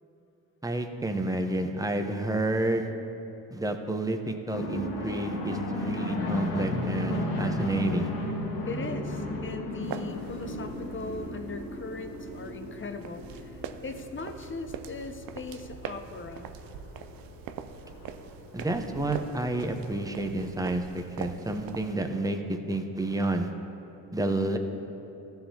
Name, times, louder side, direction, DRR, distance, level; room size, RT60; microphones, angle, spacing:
voice 1, 0.6-2.9 3.5-8.1 18.5-23.5 24.1-24.6, right 2 dB, 10° right, 5 dB, 1.0 m, -30 dB
sound 1, 4.5-20.1, left 1 dB, 70° left, 1.8 m, -36 dB
voice 2, 8.7-16.5, left 3 dB, 30° left, 6 dB, 0.9 m, -39 dB
sound 2, 9.8-21.9, right 8 dB, 60° right, 0.6 m, -43 dB
15.0 x 5.7 x 3.0 m, 3.0 s
hypercardioid pair, 45°, 41 cm